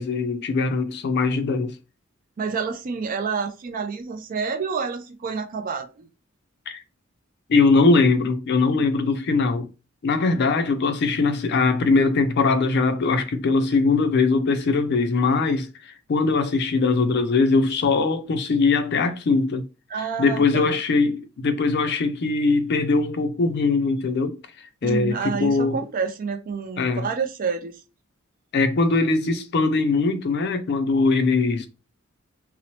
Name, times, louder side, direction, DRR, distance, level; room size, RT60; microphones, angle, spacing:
voice 1, 0.0-1.8 6.7-6.8 7.5-9.7 10.0-19.7 20.2-24.4 24.8-25.8 26.8-27.1 28.5-31.7, left 3 dB, 55° left, 0.4 m, -21 dB
voice 2, 2.4-6.1 19.9-20.8 24.8-27.8, right 5 dB, 40° right, 0.4 m, -28 dB
2.9 x 2.0 x 2.8 m
head